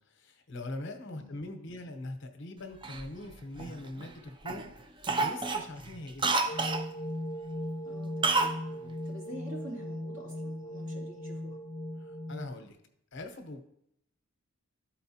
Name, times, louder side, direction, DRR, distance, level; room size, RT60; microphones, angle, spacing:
voice 1, 0.1-4.7 5.2-6.7 12.0-12.8 13.1-13.6, left 2 dB, 60° left, 6 dB, 0.9 m, -42 dB
Cough, 2.8-4.1 4.5-4.7 5.0-6.9 8.2-8.6 8.9-9.0, right 3 dB, 25° right, 0.4 m, -29 dB
sound 1, 6.5-12.5, left 1 dB, 30° left, 0.8 m, -38 dB
voice 2, 7.8-8.5 9.0-11.6, equal, 65° right, -4 dB, 2.9 m, -46 dB
13.0 x 4.4 x 2.8 m, 0.74 s
head